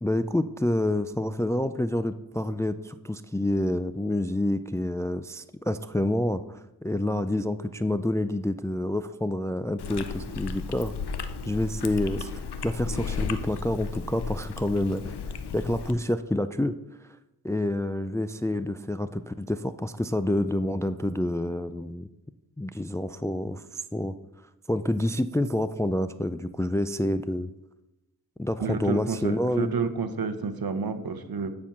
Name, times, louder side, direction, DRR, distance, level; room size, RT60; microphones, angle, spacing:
voice 1, 0.0-10.9 11.5-16.7 17.4-22.1 22.6-24.1 24.7-27.5 28.4-29.7, left 1 dB, 10° left, 12 dB, 0.3 m, -28 dB
Chewing mastication, 9.8-15.9, left 5 dB, 85° left, 0.6 m, -34 dB
voice 2, 28.6-31.5, right 5 dB, 65° right, 10 dB, 0.8 m, -30 dB
9.6 x 4.4 x 5.9 m, 0.97 s
cardioid pair, 40°, 39 cm